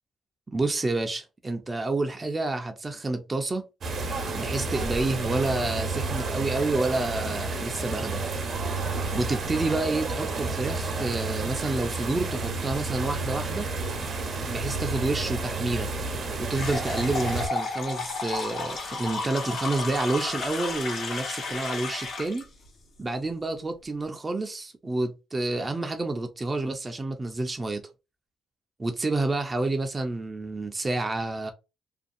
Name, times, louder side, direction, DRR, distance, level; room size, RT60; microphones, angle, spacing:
voice 1, 0.5-3.6 4.3-8.2 9.1-13.7 14.5-15.9 16.4-22.5 23.0-27.8 28.8-31.5, right 2 dB, 25° right, 0.4 m, -29 dB
sound 1, 3.8-17.5, right 3 dB, 55° right, 0.7 m, -31 dB
sound 2, 16.5-22.4, left 3 dB, 65° left, 1.0 m, -32 dB
2.5 x 2.2 x 2.5 m
cardioid pair, 90°, 0 cm